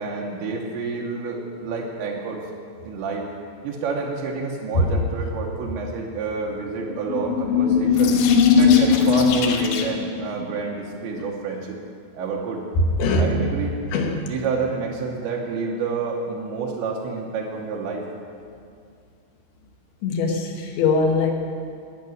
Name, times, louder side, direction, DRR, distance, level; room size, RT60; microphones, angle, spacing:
voice 1, 0.0-2.4 2.8-3.3 3.6-8.2 8.5-11.8 12.1-12.6 13.0-13.7 14.3-18.0, right 4 dB, 80° right, -2 dB, 3.3 m, -28 dB
sound 1, 6.9-10.1, left 6 dB, 90° left, 3.4 m, -18 dB
voice 2, 13.9-14.3 20.0-21.3, left 3 dB, 70° left, 2 dB, 2.8 m, -21 dB
15.5 x 6.5 x 9.2 m, 2.4 s
omnidirectional pair, 5.3 m